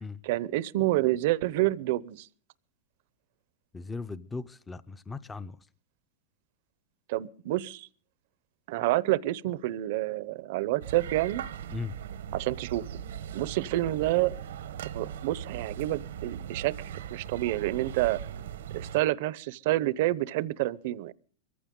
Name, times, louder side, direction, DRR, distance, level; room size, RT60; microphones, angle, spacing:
voice 1, 0.2-2.3 7.1-7.9 8.7-11.4 12.3-12.9 13.3-14.3 14.9-16.7 17.1-18.2 18.7-21.1, right 16 dB, 60° right, 0.7 m, -28 dB
voice 2, 3.7-5.6 11.7-11.9, left 4 dB, 10° left, 0.6 m, -38 dB
sound 1, 10.8-19.0, right 9 dB, 85° right, 1.1 m, -39 dB
23.0 x 15.0 x 3.8 m
supercardioid pair, 140°, 0 cm